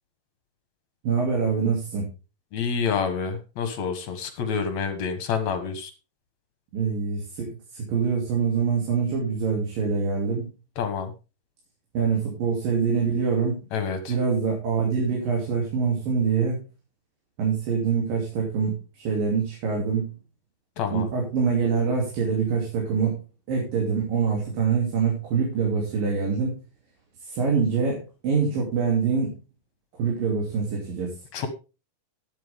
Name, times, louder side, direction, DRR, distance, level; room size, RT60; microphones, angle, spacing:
voice 1, 1.0-2.1 6.7-10.5 11.9-13.6 14.1-16.6 17.4-20.1 20.9-23.2 23.5-26.5 27.2-29.3 30.0-31.2, right 5 dB, 80° right, -2 dB, 4.6 m, -25 dB
voice 2, 2.5-5.9 10.8-11.1 13.7-14.1 20.8-21.1 31.3-31.5, left 6 dB, 60° left, 8 dB, 2.5 m, -28 dB
12.0 x 10.0 x 3.6 m, 0.30 s
omnidirectional pair, 4.0 m